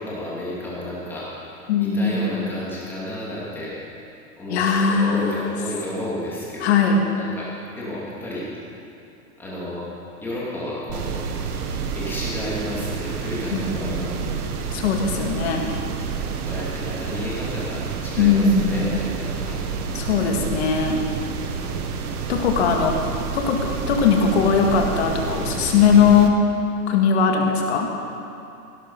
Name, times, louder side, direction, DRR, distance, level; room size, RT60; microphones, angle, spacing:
voice 1, 0.0-3.7 4.4-8.5 9.4-9.9 10.2-11.2 11.9-14.1 15.6-15.9 16.5-19.6 21.6-21.9, left 1 dB, 5° left, -8 dB, 2.5 m, -32 dB
voice 2, 1.7-2.5 4.5-5.5 6.6-7.1 13.5-14.4 14.7-15.7 18.2-19.0 19.9-21.0 22.3-23.0 23.3-23.6 23.9-26.3 26.9-27.9, left 6 dB, 45° left, 2 dB, 2.0 m, -20 dB
sound 1, 10.9-26.3, right 6 dB, 70° right, 1.6 m, -29 dB
17.0 x 12.0 x 5.5 m, 2.7 s
hypercardioid pair, 170°, 47 cm